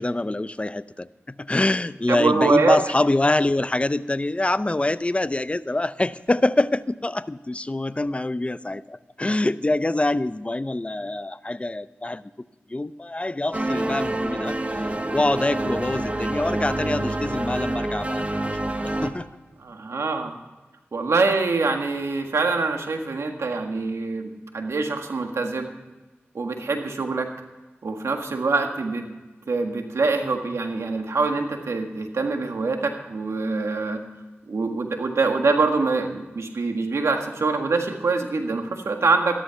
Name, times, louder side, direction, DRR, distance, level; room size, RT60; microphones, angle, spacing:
voice 1, 0.0-12.2 12.7-14.6 15.1-18.2 18.6-19.3, left 2 dB, 25° left, 15 dB, 0.6 m, -25 dB
voice 2, 2.1-2.8 19.6-20.4 20.9-25.7 26.3-27.3 27.8-29.1 29.5-34.0 34.5-39.3, right 3 dB, 85° right, 4 dB, 1.7 m, -24 dB
sound 1, 13.5-19.1, right 1 dB, 30° right, 1.5 m, -27 dB
14.0 x 12.5 x 5.7 m, 1.2 s
cardioid pair, 45°, 5 cm